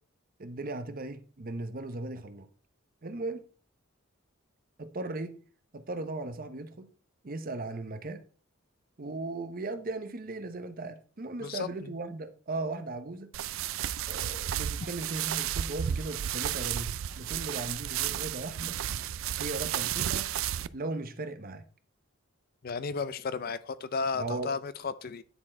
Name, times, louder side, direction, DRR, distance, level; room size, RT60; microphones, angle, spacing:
voice 1, 0.4-2.5 3.0-3.4 4.8-5.4 5.7-6.9 7.2-8.2 9.0-13.3 14.1-18.8 19.4-20.3 20.7-21.6 24.1-24.5, right 2 dB, 45° right, 0.8 m, -37 dB
sound 1, 13.3-20.7, right 11 dB, 70° right, 0.4 m, -33 dB
voice 2, 22.6-25.2, left 5 dB, 45° left, 0.5 m, -33 dB
10.0 x 4.3 x 4.3 m
head